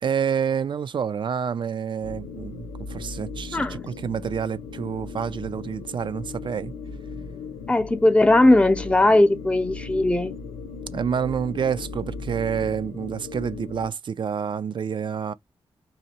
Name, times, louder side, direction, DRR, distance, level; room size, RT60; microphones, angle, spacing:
voice 1, 0.0-6.7 10.9-15.3, right 7 dB, 55° right, 0.4 m, -28 dB
sound 1, 2.0-13.9, left 4 dB, 90° left, 0.5 m, -37 dB
voice 2, 7.7-10.3, left 2 dB, 10° left, 0.6 m, -18 dB
4.1 x 2.7 x 2.9 m
cardioid pair, 50°, 10 cm